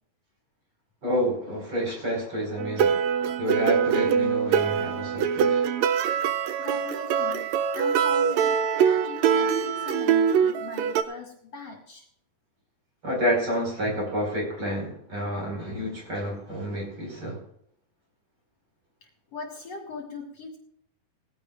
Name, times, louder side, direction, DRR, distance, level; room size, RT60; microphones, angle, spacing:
voice 1, 1.0-3.0 3.4-5.7 13.0-17.4, equal, 35° right, -1 dB, 5.8 m, -29 dB
sound 1, 2.6-11.0, right 7 dB, 80° right, 1.5 m, -23 dB
voice 2, 6.6-12.0 19.0-20.6, left 5 dB, 50° left, -1 dB, 3.2 m, -39 dB
19.0 x 16.0 x 2.5 m, 0.69 s
omnidirectional pair, 3.9 m